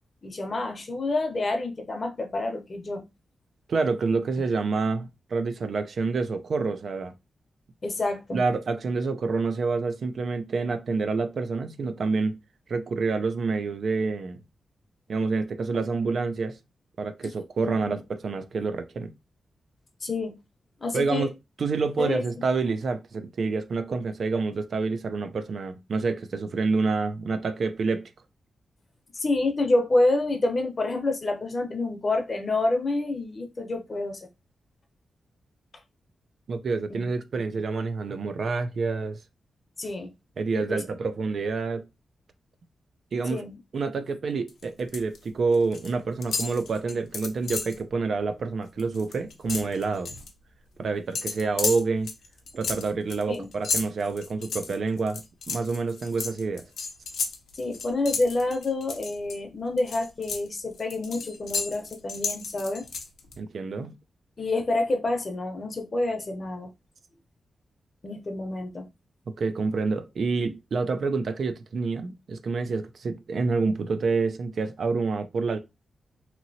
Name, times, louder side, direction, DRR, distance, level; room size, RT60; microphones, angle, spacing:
voice 1, 0.2-3.0 7.8-8.4 17.2-17.3 17.6-18.0 20.0-20.4 20.8-21.3 22.0-22.2 29.1-34.3 36.9-37.1 39.8-40.1 40.5-40.8 43.3-43.6 53.3-53.5 57.5-62.9 63.8-63.9 64.4-66.7 68.0-68.9, left 2 dB, 45° left, 0.8 m, -28 dB
voice 2, 3.7-7.1 8.3-12.4 12.7-14.4 15.1-16.6 17.0-19.1 20.9-21.3 21.6-28.1 36.5-39.2 40.4-41.9 43.1-43.4 43.7-50.1 50.8-52.1 52.5-56.7 63.4-63.9 69.4-75.6, right 4 dB, 65° right, 0.5 m, -28 dB
sound 1, 44.5-45.2 45.4-45.9 46.2-47.8 48.2-48.4 48.7-50.3 51.1-59.4 59.8-63.4, left 4 dB, 85° left, 0.6 m, -33 dB
3.0 x 2.8 x 2.7 m
cardioid pair, 75°, 0 cm